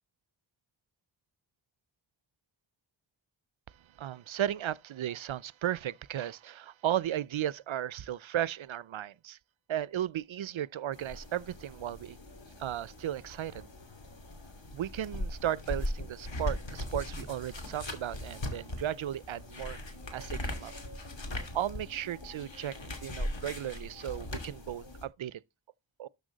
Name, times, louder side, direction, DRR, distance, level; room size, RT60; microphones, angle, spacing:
voice 1, 3.7-9.4 9.7-12.2 12.6-13.7 14.7-19.8 20.1-20.7 21.5-25.4 26.0-26.1, right 11 dB, 80° right, 0.6 m, -35 dB
sound 1, 10.9-25.0, left 1 dB, 70° left, 2.7 m, -40 dB
12.5 x 6.9 x 3.9 m
wide cardioid pair, 60°, 46 cm